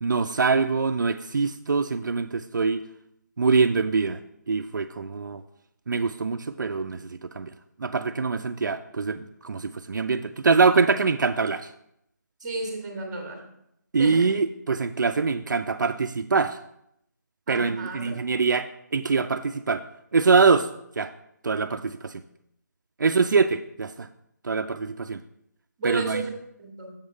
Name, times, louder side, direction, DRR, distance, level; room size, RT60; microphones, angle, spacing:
voice 1, 0.0-2.8 3.4-4.2 4.5-5.4 5.9-7.5 7.8-11.7 13.9-16.6 17.5-19.8 20.1-20.7 21.0-21.1 21.4-22.2 23.0-24.1 24.4-25.2 25.8-26.3, right 4 dB, 75° right, 8 dB, 0.4 m, -24 dB
voice 2, 12.4-13.4 14.0-14.3 17.5-18.0 25.8-26.3 26.6-26.9, right 3 dB, 20° right, 1 dB, 1.6 m, -33 dB
7.1 x 3.6 x 6.3 m, 0.76 s
figure-of-eight pair, 175°, 10 cm